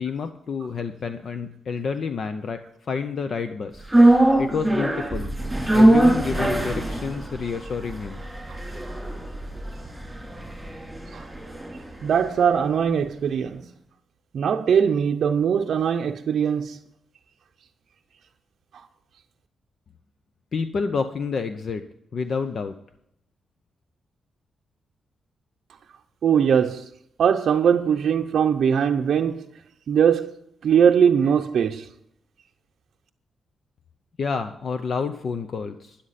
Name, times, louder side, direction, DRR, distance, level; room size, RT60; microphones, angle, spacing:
voice 1, 0.0-3.9 4.4-5.3 5.7-8.2 20.5-21.8 22.1-22.8 34.2-36.0, left 5 dB, 50° left, 0.6 m, -29 dB
sound 1, 3.9-12.2 12.5-12.6, right 1 dB, 5° right, 3.2 m, -22 dB
voice 2, 8.5-9.0 11.1-11.3 12.0-13.6 14.3-16.8 18.7-18.9 26.2-26.9 27.2-29.4 29.9-30.3 30.6-31.9, right 7 dB, 65° right, 0.6 m, -21 dB
12.5 x 10.5 x 4.1 m
wide cardioid pair, 140°, 0 cm